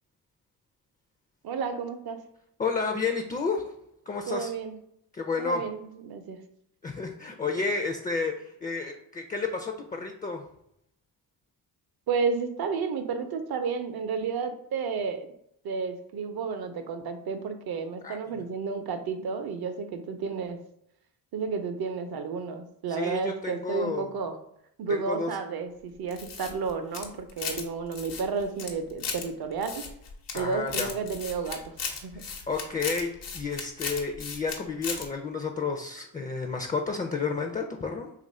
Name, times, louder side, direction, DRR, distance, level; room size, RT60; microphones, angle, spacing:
voice 1, 1.4-2.2 4.3-4.8 5.4-6.4 12.1-15.3 15.6-20.6 21.3-24.4 24.8-29.7 30.3-32.2, right 5 dB, 65° right, 8 dB, 0.6 m, -32 dB
voice 2, 2.6-3.7 4.1-4.5 5.1-5.6 6.8-10.4 18.0-18.2 22.9-24.1 24.9-25.3 30.3-30.9 32.1-38.1, left 4 dB, 20° left, 3 dB, 0.4 m, -31 dB
sound 1, 26.1-27.7 27.9-29.2 29.6-30.4 30.7-34.6 34.8-35.1, left 5 dB, 80° left, 0.9 m, -35 dB
3.0 x 2.5 x 4.1 m, 0.76 s
cardioid pair, 75°, 41 cm